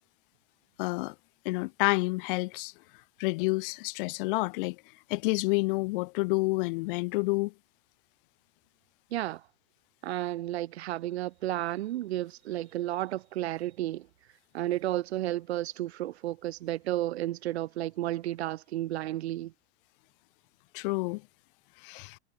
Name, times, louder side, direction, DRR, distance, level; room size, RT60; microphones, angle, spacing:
voice 1, 0.8-1.1 1.5-2.7 3.2-4.8 5.1-7.5 20.7-21.2 21.8-22.2, left 25 dB, 55° left, 2.0 m, -29 dB
voice 2, 9.1-9.4 10.0-14.1 14.5-19.5, right 14 dB, 75° right, 6.2 m, -32 dB
supercardioid pair, 145°, 33 cm